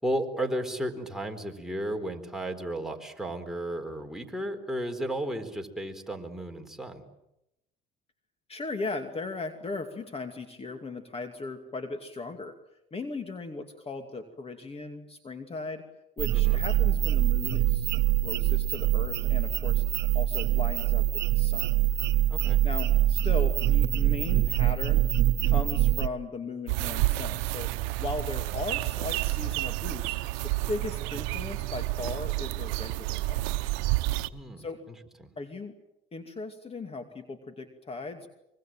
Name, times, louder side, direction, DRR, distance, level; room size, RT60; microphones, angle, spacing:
voice 1, 0.0-7.0 16.3-16.6 22.3-22.6 34.3-34.7 35.2-35.3, right 1 dB, ahead, 3 dB, 4.2 m, -33 dB
voice 2, 8.5-12.6 12.9-15.8 16.2-17.9 18.2-19.8 20.1-21.1 21.3-21.7 22.6-25.0 25.4-27.7 28.0-30.2 30.4-33.7 34.6-34.8 35.4-35.7 36.1-38.3, left 3 dB, 30° left, 6 dB, 2.6 m, -37 dB
sound 1, 16.2-26.1, right 14 dB, 55° right, 1.1 m, -24 dB
sound 2, 26.7-34.3, right 19 dB, 75° right, 0.9 m, -30 dB
25.0 x 24.0 x 7.6 m, 0.86 s
supercardioid pair, 85°, 21 cm